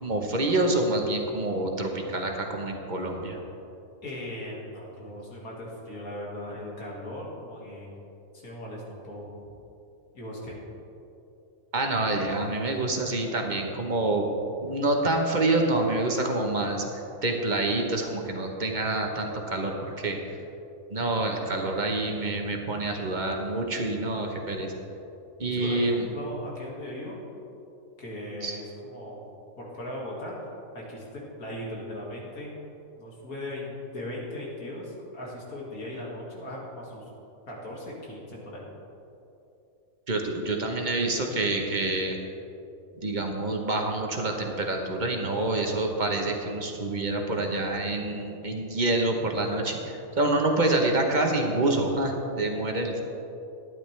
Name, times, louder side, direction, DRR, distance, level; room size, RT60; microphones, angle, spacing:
voice 1, 0.0-3.4 11.7-14.2 14.6-16.8 17.2-20.2 20.9-24.7 25.4-26.1 28.4-28.5 40.1-42.2 43.0-53.0, right 2 dB, 35° right, 2 dB, 1.1 m, -27 dB
voice 2, 4.0-7.9 8.3-9.4 10.1-10.6 25.5-27.2 28.0-29.2 29.6-32.5 33.0-37.0 37.5-38.7, left 1 dB, 85° left, -4 dB, 2.5 m, -38 dB
12.5 x 10.5 x 3.3 m, 2.8 s
omnidirectional pair, 1.5 m